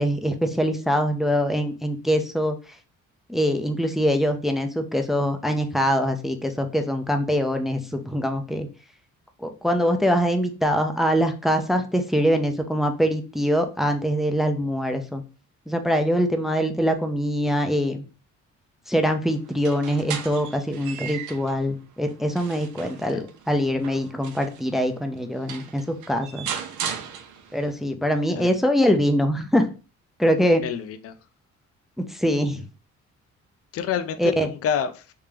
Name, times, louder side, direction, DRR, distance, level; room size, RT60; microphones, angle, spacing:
voice 1, 0.0-2.6 3.3-8.7 9.4-15.2 15.7-18.0 18.9-26.5 27.5-29.7 30.2-30.6 32.1-32.6 34.2-34.5, equal, ahead, 0.5 m, -23 dB
sound 1, 19.5-21.6 22.1-24.6 25.2-25.3 25.5-27.7, right 8 dB, 80° right, 0.6 m, -36 dB
voice 2, 30.6-31.1 33.7-35.1, left 8 dB, 50° left, 0.5 m, -28 dB
3.5 x 2.8 x 3.3 m
cardioid pair, 90°, 30 cm